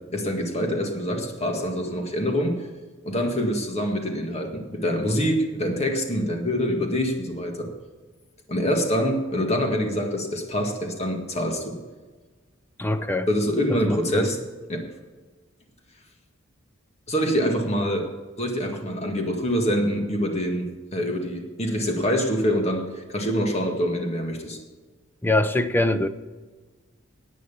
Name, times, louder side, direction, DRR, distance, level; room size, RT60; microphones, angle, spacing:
voice 1, 0.1-2.6 3.0-7.7 8.5-11.8 13.3-14.4 14.7-14.9 17.1-18.1 18.4-24.6, equal, 30° left, 3 dB, 1.8 m, -25 dB
voice 2, 12.8-13.3 13.9-14.3 25.2-26.1, left 2 dB, 10° left, 9 dB, 0.6 m, -23 dB
10.5 x 9.3 x 7.1 m, 1.3 s
head